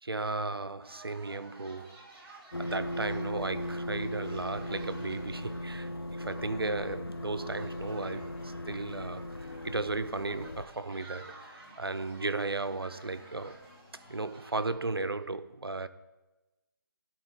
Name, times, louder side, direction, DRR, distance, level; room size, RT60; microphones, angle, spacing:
voice 1, 0.0-2.0 2.6-13.6 14.1-15.9, right 3 dB, 85° right, 0.5 m, -35 dB
sound 1, 0.8-14.7, right 2 dB, 5° right, 0.5 m, -53 dB
sound 2, 2.5-10.6, left 1 dB, 90° left, 0.4 m, -38 dB
sound 3, 6.3-15.3, left 1 dB, 30° left, 1.8 m, -61 dB
11.0 x 4.4 x 4.0 m
figure-of-eight pair, 150°, 12 cm